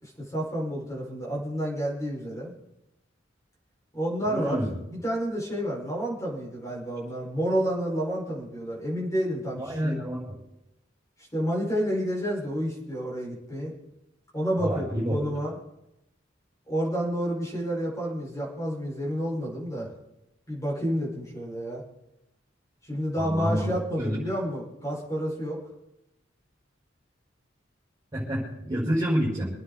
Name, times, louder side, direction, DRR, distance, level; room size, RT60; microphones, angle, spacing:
voice 1, 0.0-2.5 3.9-4.6 4.9-10.0 11.3-13.7 14.3-15.6 16.7-19.9 20.5-21.8 22.8-25.6, equal, 15° left, -5 dB, 5.4 m, -30 dB
voice 2, 4.3-4.7 9.6-10.3 14.6-15.2 23.2-23.7 24.0-24.2 28.1-29.5, equal, 20° right, -9 dB, 5.8 m, -28 dB
27.5 x 9.6 x 4.0 m, 0.90 s
head